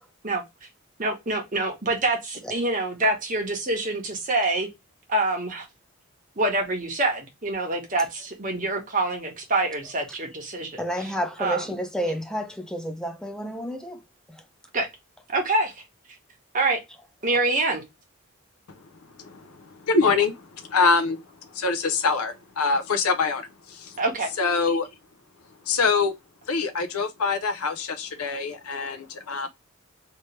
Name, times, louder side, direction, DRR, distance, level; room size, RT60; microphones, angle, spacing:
voice 1, 1.0-4.7 5.1-5.7 6.4-11.1 11.4-11.6 14.7-14.9 15.3-15.7 16.5-16.8 17.2-17.8 24.0-24.3, right 2 dB, 35° right, 1.2 m, -26 dB
voice 2, 10.8-14.0 14.3-14.4, equal, 5° left, 0.3 m, -30 dB
voice 3, 19.2-21.2 21.5-23.9 24.4-24.9 25.7-26.1 26.5-29.5, left 4 dB, 85° left, 0.7 m, -24 dB
3.2 x 2.9 x 3.2 m
head